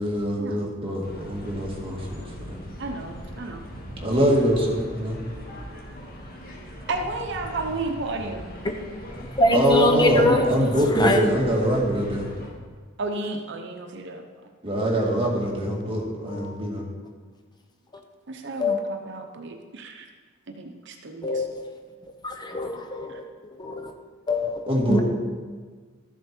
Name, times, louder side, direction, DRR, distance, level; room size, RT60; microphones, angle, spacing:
voice 1, 0.0-2.6 4.0-5.2 9.5-12.3 14.6-16.8 24.7-25.0, equal, 25° right, -2 dB, 2.1 m, -23 dB
sound 1, 1.0-12.5, equal, 50° left, 2.2 m, -40 dB
voice 2, 2.8-3.6 6.9-8.5 13.0-14.5 18.3-20.1 20.5-21.5 23.1-23.2, right 3 dB, 60° right, 4 dB, 0.9 m, -33 dB
voice 3, 9.4-11.2 16.3-16.5 18.6-18.8 21.2-21.6 22.2-23.2 23.6-23.9 24.3-24.6 24.9-25.0, left 2 dB, 20° left, 4 dB, 0.8 m, -23 dB
13.5 x 7.1 x 4.5 m, 1.5 s
head